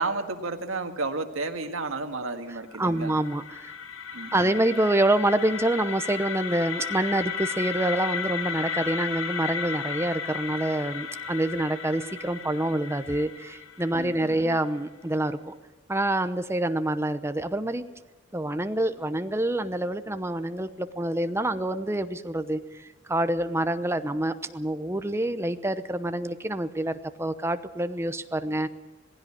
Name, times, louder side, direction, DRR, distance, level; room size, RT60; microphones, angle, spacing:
voice 1, 0.0-3.1 4.1-4.6 14.0-14.6, right 3 dB, 85° right, 5 dB, 1.9 m, -32 dB
sound 1, 2.7-14.7, left 6 dB, 90° left, 1.5 m, -34 dB
voice 2, 2.8-3.7 4.3-15.5 15.9-17.8 18.3-28.7, right 1 dB, 15° right, 10 dB, 0.8 m, -27 dB
19.0 x 16.0 x 8.7 m, 1.3 s
head